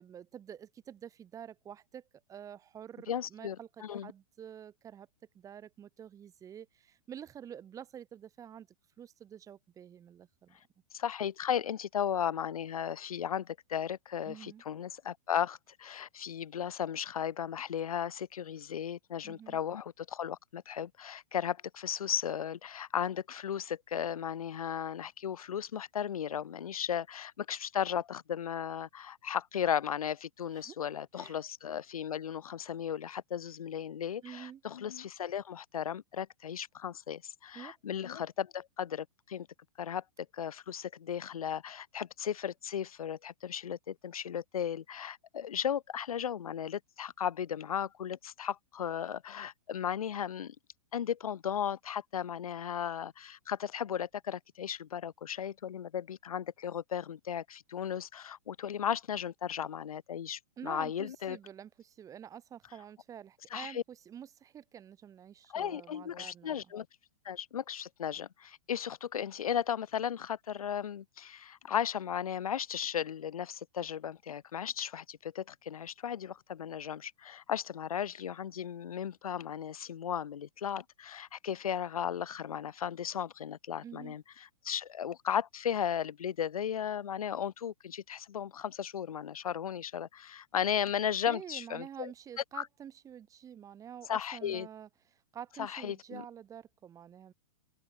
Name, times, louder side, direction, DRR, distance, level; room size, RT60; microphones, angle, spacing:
voice 1, 0.0-2.0 2.3-3.7 4.0-5.1 5.3-8.7 9.0-10.6 14.3-14.6 19.2-19.6 30.5-30.8 31.2-31.4 34.2-34.6 37.5-37.7 60.6-66.6 83.8-84.2 91.3-94.9 95.3-97.3, right 9 dB, 20° right, 1.8 m, -48 dB
voice 2, 3.1-4.1 10.9-39.5 39.8-40.0 40.3-50.6 50.9-61.4 63.5-63.8 65.5-66.9 67.3-84.2 84.6-92.1 92.5-92.7 94.1-94.7 95.6-96.2, left 9 dB, 85° left, 1.9 m, -35 dB
open air
hypercardioid pair, 140°, 18 cm